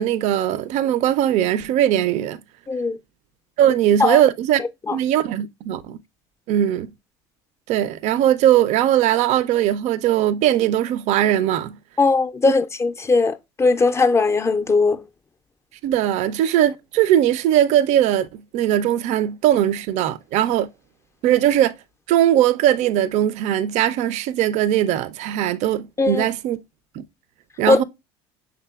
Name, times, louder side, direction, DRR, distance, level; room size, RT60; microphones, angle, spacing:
voice 1, 0.0-2.4 3.6-4.6 4.9-6.0 6.5-6.9 7.7-11.8 15.8-20.7 21.2-21.7 22.1-26.6 27.0-27.1 27.6-27.8, right 11 dB, 65° right, 0.4 m, -19 dB
voice 2, 2.7-3.0 4.0-4.2 4.9-5.0 12.0-15.0 26.0-26.3 27.7-27.8, left 3 dB, 20° left, 0.4 m, -19 dB
5.7 x 3.6 x 2.3 m
supercardioid pair, 105°, 13 cm